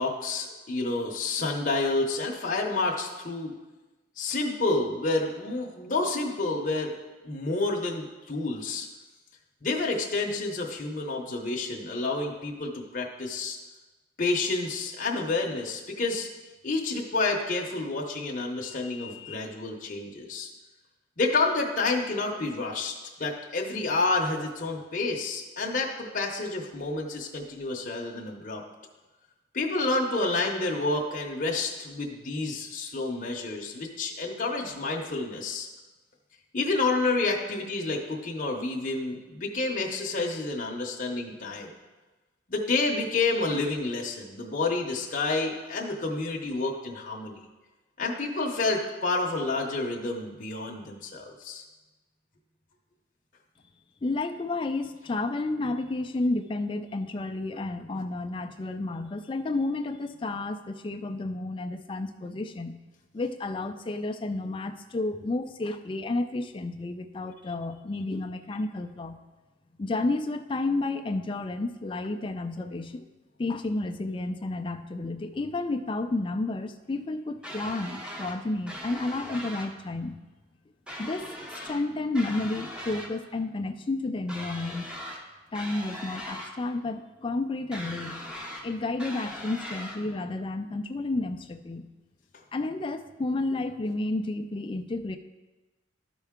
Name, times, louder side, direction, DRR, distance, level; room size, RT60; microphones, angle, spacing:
voice 1, 0.0-3.5 4.2-6.9 7.2-8.9 9.6-13.6 14.2-16.3 16.6-20.5 21.2-22.9 23.2-28.6 29.5-35.7 36.5-41.7 42.5-47.4 48.0-51.6, left 3 dB, 40° left, -1 dB, 0.7 m, -29 dB
voice 2, 54.0-62.8 63.1-69.2 69.8-73.1 73.4-80.2 81.0-81.3 81.6-84.9 85.5-88.2 88.6-91.9 92.5-95.2, left 2 dB, 25° left, 7 dB, 0.3 m, -31 dB
sound 1, 77.4-78.4 78.7-79.7 80.9-81.8 82.1-83.1 84.3-85.2 85.5-86.5 87.7-88.7 89.0-90.0, equal, 5° right, 0.7 m, -39 dB
12.5 x 4.5 x 3.6 m, 1.2 s
head